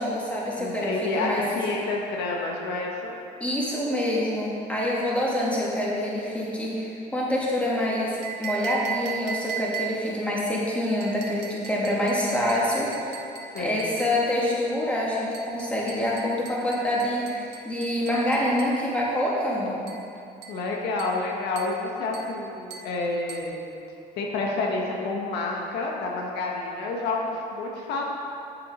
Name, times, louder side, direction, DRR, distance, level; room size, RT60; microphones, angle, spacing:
voice 1, 0.0-0.9 1.2-1.4 3.4-13.1 13.6-19.8, left 1 dB, 5° left, -6 dB, 2.3 m, -26 dB
voice 2, 0.6-3.2 13.5-13.8 20.5-23.7 24.2-28.0, left 3 dB, 85° left, -1 dB, 1.3 m, -29 dB
sound 1, 8.2-10.2 11.0-14.2 15.3-18.8 19.9-20.1 20.4-20.7 21.0-21.3 21.6-21.8 22.1-22.4 22.7-23.0 23.3-23.5, right 8 dB, 80° right, 1.2 m, -38 dB
8.5 x 7.2 x 5.0 m, 2.7 s
cardioid pair, 110°, 17 cm